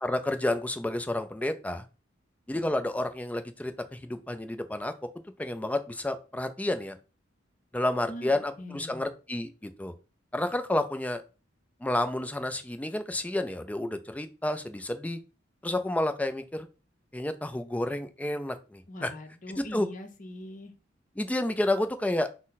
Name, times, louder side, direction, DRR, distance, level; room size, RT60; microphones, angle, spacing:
voice 1, 0.0-1.9 2.5-4.9 5.4-7.0 7.7-9.9 10.3-11.2 11.8-15.2 15.6-16.7 17.1-19.1 19.6-19.9 21.2-22.3, left 1 dB, 10° left, 8 dB, 0.4 m, -30 dB
voice 2, 8.1-9.0 18.9-20.7, left 1 dB, 45° left, 5 dB, 0.8 m, -42 dB
6.1 x 2.1 x 4.0 m, 0.32 s
head